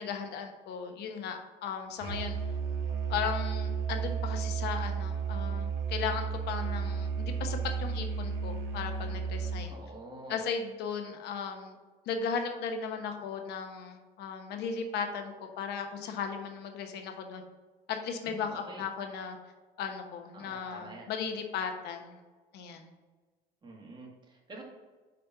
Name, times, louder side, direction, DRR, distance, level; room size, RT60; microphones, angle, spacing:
voice 1, 0.0-2.4 3.1-9.8 10.3-11.8 12.1-17.4 17.9-19.4 19.8-22.2 22.5-22.9, left 6 dB, 75° left, 5 dB, 1.0 m, -36 dB
Musical instrument, 2.0-9.8, right 6 dB, 80° right, 1.0 m, -33 dB
voice 2, 9.7-10.4 18.2-18.8 20.3-21.1 23.6-24.6, right 2 dB, 25° right, -1 dB, 1.8 m, -47 dB
5.0 x 4.3 x 5.7 m, 1.3 s
cardioid pair, 110°, 17 cm